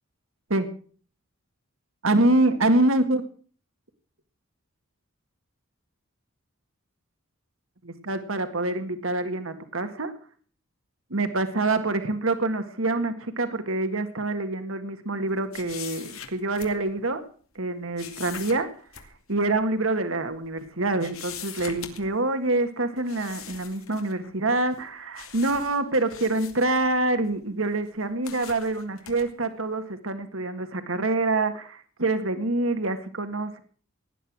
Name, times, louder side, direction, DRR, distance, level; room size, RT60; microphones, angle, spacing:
voice 1, 2.0-3.2 7.8-10.1 11.1-17.2 17.6-18.7 19.3-33.6, right 2 dB, 65° right, 9 dB, 1.9 m, -26 dB
sound 1, 15.5-17.1 18.0-19.1 19.5-19.6 20.3-20.7 21.0-22.3 23.0-24.3 24.7-24.9 25.1-27.4 27.8-29.3, left 9 dB, 75° left, 2.6 m, -42 dB
18.0 x 11.0 x 6.1 m, 0.43 s
head